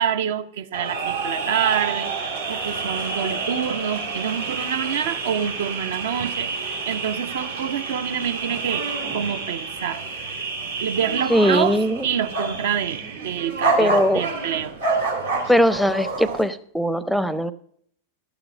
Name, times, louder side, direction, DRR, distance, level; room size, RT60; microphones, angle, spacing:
voice 1, 0.0-2.1 2.5-10.5 10.8-11.8 12.0-14.7, right 8 dB, 55° right, 11 dB, 0.8 m, -27 dB
sound 1, 0.7-16.4, right 4 dB, 70° right, 2.8 m, -28 dB
voice 2, 11.3-12.1 13.8-14.2 15.5-17.5, equal, ahead, 18 dB, 0.6 m, -20 dB
12.5 x 7.0 x 6.6 m, 0.63 s
figure-of-eight pair, 90°, 0 cm